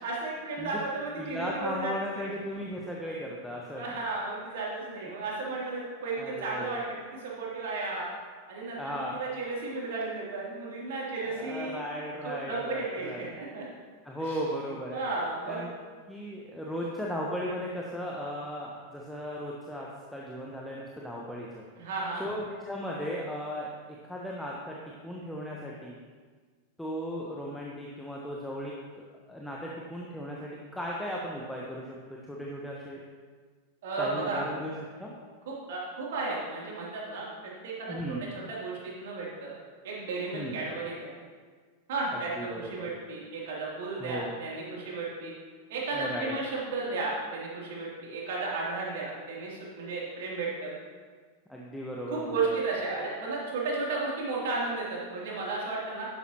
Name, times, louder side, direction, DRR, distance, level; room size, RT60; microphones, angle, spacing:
voice 1, 0.0-2.3 3.7-6.8 7.1-8.1 8.5-11.8 12.2-13.7 14.3-14.4 14.9-15.6 21.8-22.2 33.8-34.4 34.9-35.0 35.5-39.5 39.8-41.1 41.9-45.3 45.7-50.7 52.1-56.1, right 3 dB, 55° right, -4 dB, 3.2 m, -34 dB
voice 2, 1.2-3.9 6.2-6.8 8.8-9.2 11.2-13.3 14.0-15.0 15.5-15.7 16.1-21.6 22.2-24.8 25.0-26.0 26.8-33.0 34.0-34.7 35.0-35.1 37.9-38.2 40.3-40.6 42.3-42.9 44.0-44.3 45.9-46.3 51.5-52.5, equal, 5° left, -3 dB, 1.2 m, -36 dB
11.0 x 11.0 x 3.0 m, 1.5 s
figure-of-eight pair, 90°, 0 cm